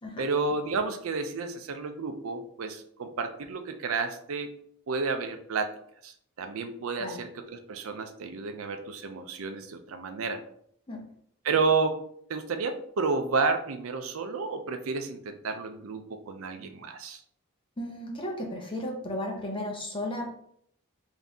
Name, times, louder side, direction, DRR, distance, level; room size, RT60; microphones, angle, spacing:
voice 1, 0.2-4.5 4.9-5.7 6.0-10.4 11.4-12.0 12.3-17.2, right 4 dB, 70° right, 7 dB, 0.5 m, -31 dB
voice 2, 17.8-20.3, left 1 dB, 25° left, 0 dB, 0.7 m, -34 dB
3.9 x 2.7 x 3.4 m, 0.66 s
head